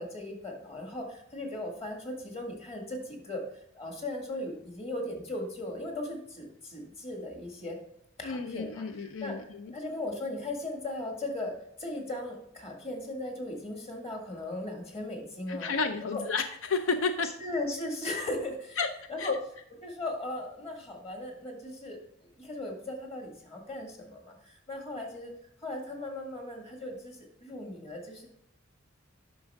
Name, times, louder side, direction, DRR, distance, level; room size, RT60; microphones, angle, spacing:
voice 1, 0.0-3.4 3.7-7.8 8.2-15.7 16.0-16.2 17.4-18.8 19.1-19.3 19.8-25.3 25.6-28.3, left 1 dB, 30° left, 1 dB, 1.9 m, -38 dB
voice 2, 8.2-9.7 15.5-17.3 18.8-18.9 19.2-19.4, left 4 dB, 80° left, 8 dB, 0.5 m, -31 dB
10.0 x 6.2 x 3.6 m, 0.72 s
head